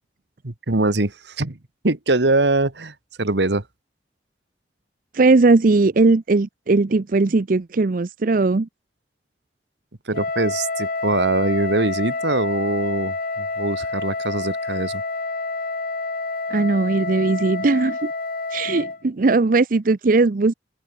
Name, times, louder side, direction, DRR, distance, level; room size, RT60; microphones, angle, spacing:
voice 1, 0.4-1.6 1.8-3.6 10.1-15.0, right 2 dB, 80° right, 1.7 m, -23 dB
voice 2, 5.1-8.7 16.5-18.1 18.5-20.5, right 3 dB, 50° right, 0.6 m, -18 dB
Wind instrument woodwind instrument, 10.1-19.0, left 3 dB, 55° left, 2.1 m, -28 dB
open air
head